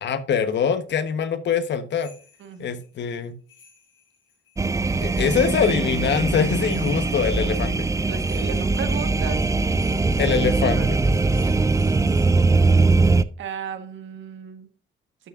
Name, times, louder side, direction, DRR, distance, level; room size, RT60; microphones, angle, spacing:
voice 1, 0.0-2.1 2.6-3.3 5.0-7.9 10.2-11.0, left 7 dB, 65° left, 11 dB, 1.1 m, -23 dB
sound 1, 1.9-12.3, left 6 dB, 90° left, 3.9 m, -55 dB
voice 2, 2.4-2.7 8.1-9.4 10.3-10.4 10.7-10.9 11.2-11.5 13.4-14.7, right 7 dB, 70° right, 8 dB, 1.5 m, -35 dB
sound 2, 4.6-13.2, right 3 dB, 15° right, 0.5 m, -21 dB
12.0 x 7.0 x 2.5 m, 0.40 s
cardioid pair, 90°, 20 cm